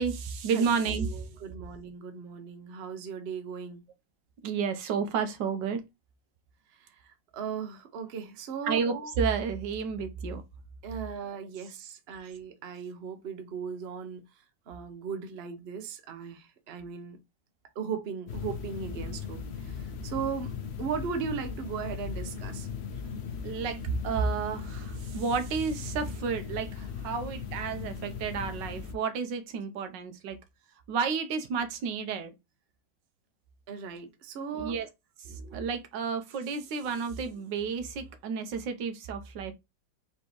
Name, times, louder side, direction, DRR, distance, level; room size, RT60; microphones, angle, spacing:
voice 1, 0.0-1.3 4.4-5.8 8.6-10.4 12.2-12.4 23.4-30.4 30.9-32.3 34.6-34.9 35.2-39.5, right 5 dB, 80° right, 1.3 m, -31 dB
voice 2, 1.0-3.8 6.8-8.8 10.8-14.2 14.7-17.2 17.7-20.5 20.8-22.7 33.7-34.8, right 6 dB, 50° right, 0.8 m, -37 dB
sound 1, 18.3-28.9, left 6 dB, 70° left, 0.6 m, -38 dB
4.3 x 3.4 x 2.9 m
omnidirectional pair, 2.0 m